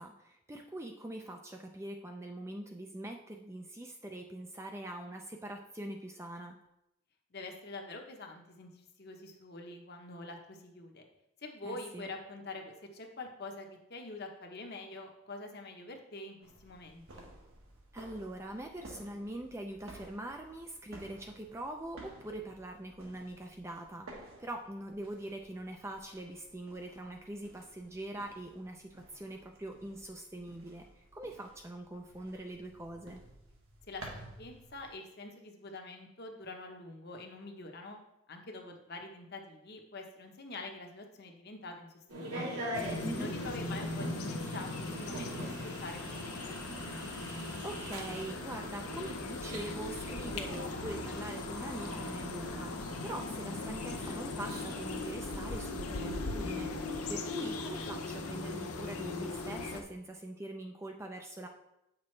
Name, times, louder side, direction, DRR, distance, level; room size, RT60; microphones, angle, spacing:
voice 1, 0.0-6.6 11.6-12.1 17.9-33.2 43.0-43.4 47.6-56.7 57.1-61.5, right 1 dB, 10° right, 3 dB, 0.4 m, -43 dB
voice 2, 7.3-11.0 11.4-17.2 33.9-38.0 38.3-41.9 42.1-42.6 43.1-46.7, left 2 dB, 45° left, 3 dB, 0.9 m, -46 dB
sound 1, 16.4-34.9, right 2 dB, 70° right, 1.4 m, -54 dB
sound 2, 42.1-55.1, equal, 90° right, 3.0 m, -43 dB
sound 3, 42.7-59.8, left 3 dB, 85° left, 0.7 m, -39 dB
8.3 x 6.0 x 3.2 m, 0.84 s
head